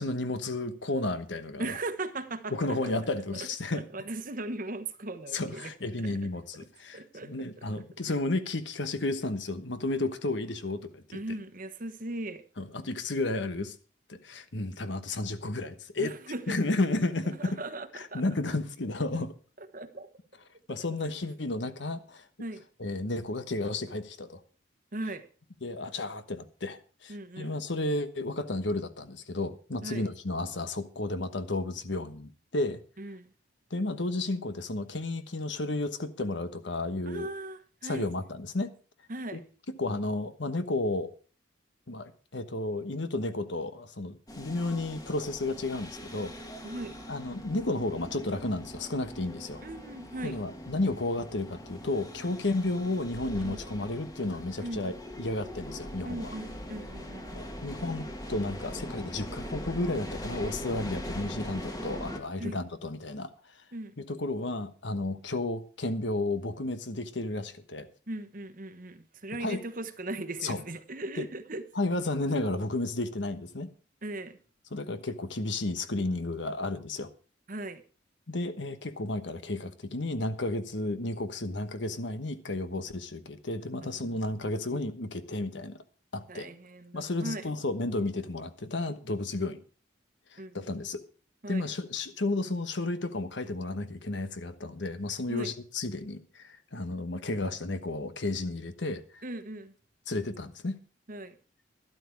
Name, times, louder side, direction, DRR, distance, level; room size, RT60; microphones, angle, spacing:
voice 1, 0.0-1.8 2.5-3.9 5.3-11.4 12.6-13.7 14.1-16.1 16.5-17.6 17.9-19.3 20.7-22.3 22.8-24.4 25.6-32.8 33.7-37.3 37.8-38.7 39.3-39.4 39.7-41.1 41.9-46.3 47.1-49.6 50.2-56.3 57.3-63.3 64.0-67.9 69.4-69.6 70.4-70.6 71.2-71.3 71.7-73.7 74.7-77.1 78.3-85.8 86.1-86.5 86.9-89.6 90.3-91.0 91.5-99.2 100.1-100.8, left 2 dB, 70° left, 1.2 m, -32 dB
voice 2, 1.6-2.5 2.8-2.9 3.3-3.5 3.7-6.2 6.9-7.6 11.1-12.4 16.0-16.6 17.4-18.2 19.6-20.1 22.4-22.6 24.9-25.3 27.1-27.5 29.8-30.1 33.0-33.3 37.1-38.1 39.1-39.4 46.6-46.9 49.6-50.4 53.4-53.6 54.6-54.8 56.0-57.5 62.4-62.6 63.7-63.9 68.1-71.6 74.0-74.4 77.5-77.8 83.8-84.3 86.3-87.5 90.4-90.8 91.4-91.7 95.3-95.5 99.2-99.7 101.1-101.3, right 2 dB, 45° right, 1.1 m, -38 dB
sound 1, 44.3-62.2, equal, 20° left, 1.6 m, -41 dB
12.0 x 12.0 x 4.7 m
head